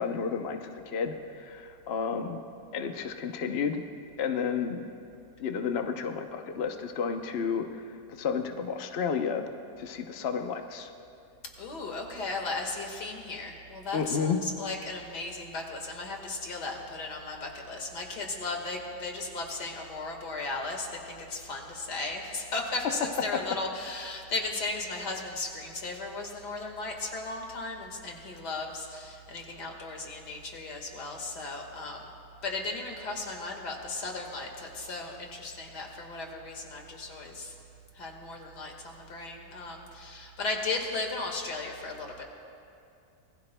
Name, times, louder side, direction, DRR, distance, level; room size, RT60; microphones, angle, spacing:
voice 1, 0.0-2.4 2.7-3.8 4.2-4.9 5.4-9.4 9.8-10.9 13.9-14.4, left 6 dB, 50° left, 5 dB, 0.9 m, -31 dB
voice 2, 11.6-32.1 32.4-37.5 37.9-42.2, left 3 dB, 85° left, 2 dB, 2.4 m, -36 dB
26.0 x 20.5 x 2.2 m, 2.5 s
omnidirectional pair, 1.7 m